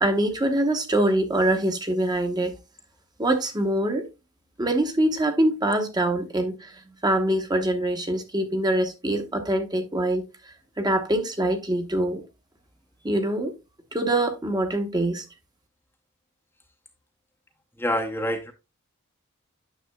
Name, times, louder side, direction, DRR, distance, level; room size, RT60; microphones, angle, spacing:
voice 1, 0.0-2.6 3.2-4.1 4.6-10.3 10.8-12.2 13.0-13.5 13.9-15.2, right 1 dB, 20° right, 1.0 m, -24 dB
voice 2, 17.8-18.5, equal, 10° left, 0.8 m, -26 dB
9.5 x 6.7 x 2.3 m
head